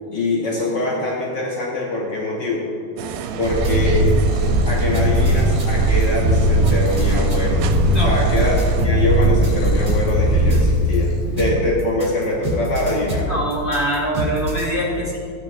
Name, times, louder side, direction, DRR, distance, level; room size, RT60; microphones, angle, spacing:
voice 1, 0.1-2.6 3.4-4.1 4.7-11.1 11.4-13.3, left 2 dB, 70° left, -4 dB, 1.0 m, -23 dB
sound 1, 3.0-8.9, right 7 dB, 90° right, 2.2 m, -30 dB
Purr, 3.4-11.5, right 1 dB, 55° left, 2.6 m, -18 dB
sound 2, 3.5-4.1 4.5-11.0 11.4-14.7, right 1 dB, 20° right, 1.7 m, -27 dB
voice 2, 13.3-15.3, right 1 dB, 20° left, -6 dB, 2.2 m, -24 dB
16.0 x 9.2 x 2.5 m, 2.4 s
omnidirectional pair, 3.7 m